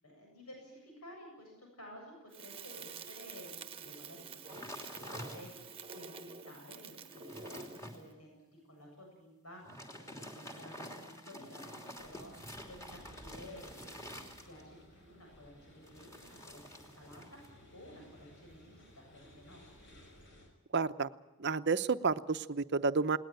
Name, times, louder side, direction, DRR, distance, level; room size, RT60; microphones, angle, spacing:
voice 1, 0.0-13.9 14.2-19.6, equal, 80° left, 1 dB, 7.9 m, -53 dB
Crackle, 2.3-8.0, right 5 dB, 25° right, 1.2 m, -48 dB
sound 1, 4.5-5.8 6.3-6.4 6.9-8.0 9.5-14.8 15.8-17.5 17.8-18.2, equal, 15° left, 2.8 m, -48 dB
sound 2, 12.0-20.5, equal, 55° left, 6.2 m, -58 dB
voice 2, 20.7-21.1 21.4-23.2, right 4 dB, 50° right, 12 dB, 0.8 m, -30 dB
20.0 x 19.0 x 9.1 m, 1.0 s
head